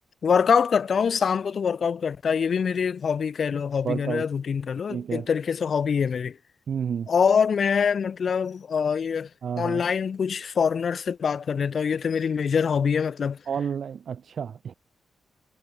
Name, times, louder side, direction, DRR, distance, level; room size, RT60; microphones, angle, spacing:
voice 1, 0.2-6.4 7.1-9.3 9.6-13.4, left 6 dB, 55° left, 2.6 m, -24 dB
voice 2, 3.8-4.3 4.9-5.3 6.7-7.1 9.4-9.8 13.5-14.7, right 7 dB, 60° right, 2.2 m, -30 dB
cardioid pair, 95°, 0 cm